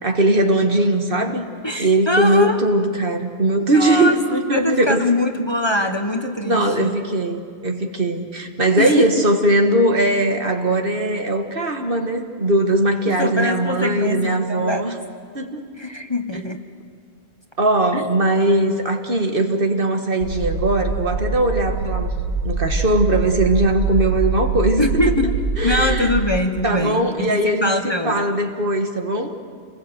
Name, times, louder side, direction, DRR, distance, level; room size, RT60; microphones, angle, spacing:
voice 1, 0.0-1.5 1.8-5.0 6.5-15.0 15.3-15.6 17.6-22.1 22.4-25.2 25.6-26.1 26.6-29.4, right 1 dB, 55° right, 4 dB, 1.9 m, -20 dB
voice 2, 1.6-2.6 3.7-4.2 4.5-7.0 8.8-9.2 13.1-14.9 15.8-16.6 17.9-18.0 24.8-25.3 25.6-28.2, left 1 dB, 25° left, 5 dB, 1.3 m, -22 dB
sound 1, 20.2-26.3, right 3 dB, 70° right, 4.7 m, -24 dB
28.0 x 20.5 x 8.1 m, 2.1 s
omnidirectional pair, 1.1 m